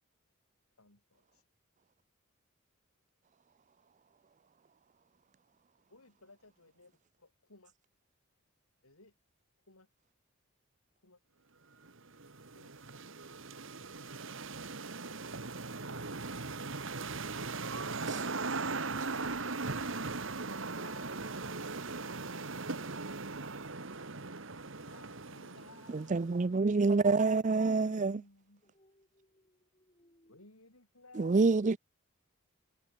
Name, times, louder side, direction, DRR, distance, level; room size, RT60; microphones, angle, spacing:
voice 1, 0.8-1.4 5.9-7.7 8.8-9.1 9.7-9.9 11.0-11.2 12.5-12.7 20.7-23.5 24.8-26.4 27.4-28.7 30.2-31.5, left 3 dB, 85° left, 7.0 m, -60 dB
sound 1, 11.8-26.4, right 3 dB, 60° right, 1.8 m, -39 dB
voice 2, 25.9-28.2 31.2-31.8, right 3 dB, 35° right, 0.4 m, -27 dB
voice 3, 28.6-30.5, equal, 25° left, 6.2 m, -68 dB
head